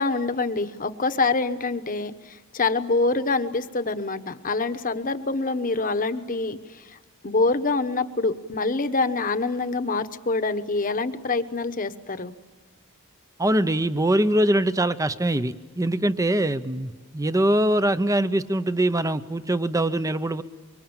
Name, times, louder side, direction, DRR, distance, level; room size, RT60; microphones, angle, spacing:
voice 1, 0.0-7.0 7.2-12.3, left 3 dB, 40° left, 10 dB, 1.2 m, -25 dB
voice 2, 13.4-20.4, right 1 dB, 15° right, 13 dB, 0.7 m, -23 dB
25.0 x 24.0 x 8.9 m, 1.3 s
head